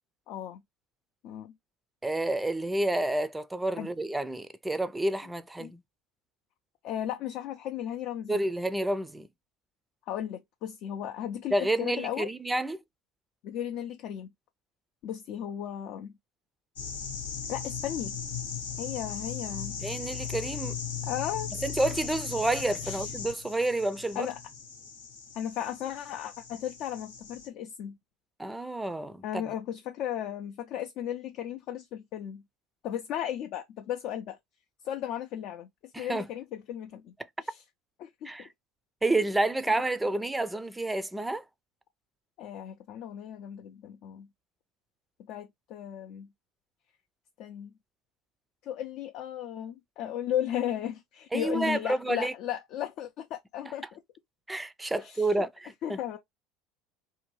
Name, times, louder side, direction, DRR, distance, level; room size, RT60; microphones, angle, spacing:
voice 1, 0.3-0.6 1.2-1.5 3.8-3.9 5.6-5.7 6.8-8.4 10.1-12.3 13.4-14.3 15.0-16.1 17.5-18.1 18.8-19.8 21.0-21.5 22.8-23.1 24.1-24.4 25.3-28.0 29.2-32.4 32.8-34.4 34.8-35.7 36.0-37.1 37.4-37.6 38.0-38.3 39.7-39.8 40.1-40.2 42.4-44.3 45.3-46.3 47.4-47.7 48.6-54.0 55.0-55.5 55.8-56.2, left 10 dB, 60° left, 0.5 m, -35 dB
voice 2, 2.0-5.8 8.3-9.3 11.5-12.8 19.8-20.8 21.6-24.3 28.4-29.4 35.9-36.3 38.2-38.5 39.0-41.4 51.3-52.3 54.5-56.0, right 2 dB, 10° right, 0.4 m, -29 dB
sound 1, 16.8-27.5, left 7 dB, 90° left, 0.9 m, -38 dB
2.7 x 2.2 x 3.0 m
hypercardioid pair, 80°, 0 cm